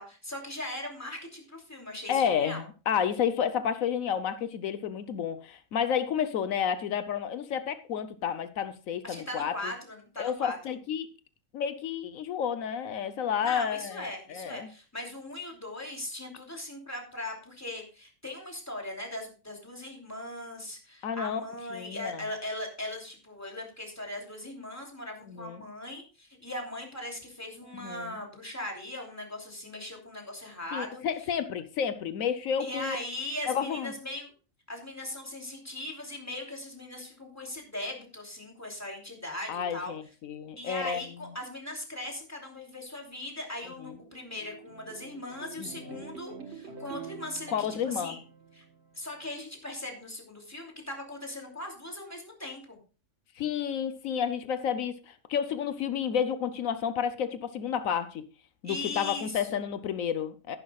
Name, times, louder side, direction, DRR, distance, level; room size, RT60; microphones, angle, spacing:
voice 1, 0.0-2.6 9.0-10.6 13.4-31.0 32.6-34.3 34.7-39.9 40.6-48.2 48.5-48.6 48.9-52.8 58.6-59.7, left 1 dB, 10° left, 2.9 m, -39 dB
voice 2, 2.1-9.7 10.2-11.1 11.5-14.7 21.0-21.4 21.7-22.2 25.3-25.6 27.7-28.2 30.7-33.0 33.5-33.9 39.5-41.0 43.8-43.9 45.6-46.0 47.5-48.2 53.4-58.3 58.6-60.6, left 8 dB, 85° left, 1.2 m, -31 dB
sound 1, 43.4-49.0, right 6 dB, 55° right, 1.6 m, -47 dB
13.5 x 11.0 x 2.3 m
omnidirectional pair, 1.4 m